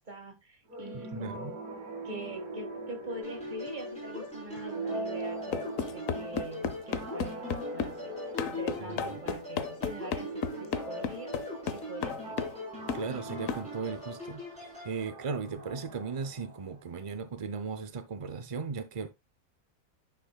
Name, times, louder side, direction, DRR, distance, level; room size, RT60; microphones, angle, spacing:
voice 1, 0.0-1.6 2.0-5.6 5.9-8.1 8.4-11.3 11.7-12.5, right 1 dB, 30° right, 1.9 m, -43 dB
sound 1, 0.7-17.1, right 2 dB, 85° right, 2.4 m, -42 dB
voice 2, 0.9-1.5 8.8-9.2 12.9-19.1, right 5 dB, 55° right, 0.3 m, -37 dB
sound 2, 3.2-14.9, left 2 dB, 5° left, 4.4 m, -43 dB
sound 3, 5.5-8.0 8.4-12.6 12.9-13.1 13.5-13.7, left 7 dB, 65° left, 1.1 m, -34 dB
10.0 x 6.1 x 2.3 m
omnidirectional pair, 1.6 m